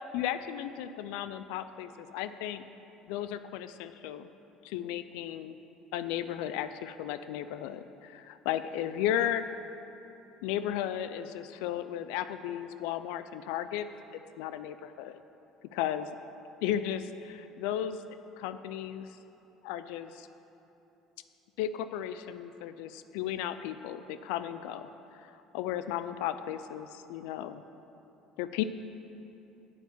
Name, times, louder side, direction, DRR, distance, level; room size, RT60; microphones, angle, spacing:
voice 1, 0.1-2.6 3.1-4.3 4.6-5.6 5.9-9.5 10.4-15.2 15.7-16.1 16.6-19.1 19.6-20.3 21.6-27.6 28.4-28.6, left 11 dB, 80° left, 12 dB, 0.3 m, -35 dB
9.2 x 5.8 x 7.2 m, 3.0 s
supercardioid pair, 85°, 0 cm